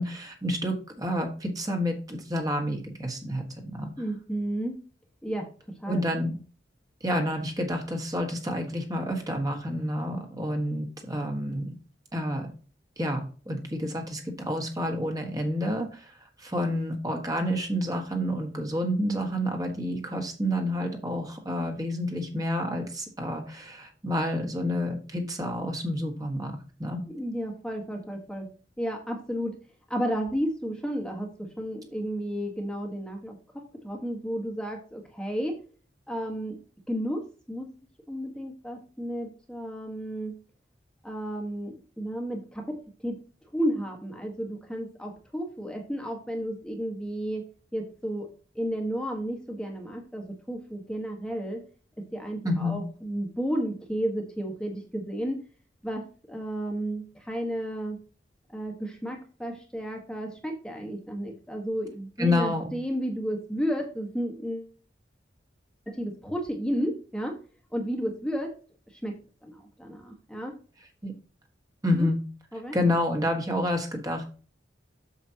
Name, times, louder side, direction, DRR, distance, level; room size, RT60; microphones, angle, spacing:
voice 1, 0.0-3.9 5.9-6.3 7.0-11.7 12.1-12.5 13.0-27.0 52.4-52.8 62.2-62.7 71.0-71.1 71.8-72.2 72.7-74.2, left 1 dB, 20° right, 2 dB, 1.6 m, -29 dB
voice 2, 4.0-4.7 5.2-5.5 5.8-6.0 27.1-28.5 28.8-29.5 29.9-35.6 36.1-36.6 36.9-37.7 38.1-40.3 41.0-43.2 43.5-47.4 47.7-48.3 48.5-51.6 52.1-55.4 55.8-58.0 58.5-64.7 65.9-67.4 67.7-68.5 68.9-69.1 69.4-70.5 71.9-72.1 72.5-72.7, equal, 5° left, 1 dB, 1.4 m, -32 dB
8.2 x 7.1 x 2.9 m, 0.37 s
head